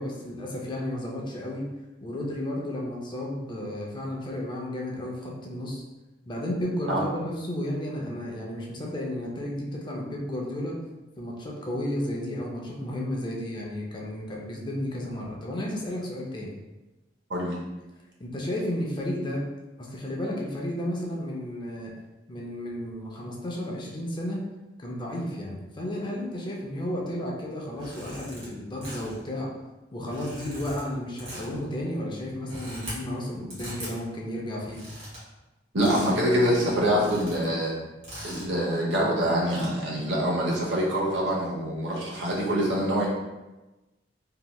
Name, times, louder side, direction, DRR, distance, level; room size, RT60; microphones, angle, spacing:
voice 1, 0.0-1.7 2.0-5.8 6.3-10.8 11.2-16.5 18.2-19.4 19.8-21.9 22.3-24.4 24.8-29.5 29.9-34.9, left 1 dB, 25° left, -2 dB, 0.5 m, -33 dB
sound 1, 27.7-28.5 28.8-29.2 30.0-30.8 31.2-31.6 32.3-33.0 33.5-33.9 34.6-35.2 35.8-36.2 36.5-36.6 36.8-37.5 38.0-38.5 39.3-39.7, equal, 40° right, 1.5 m, -41 dB
voice 2, 35.7-37.7 38.2-43.1, equal, 70° right, -4 dB, 0.8 m, -25 dB
3.0 x 2.8 x 2.2 m, 1.1 s
head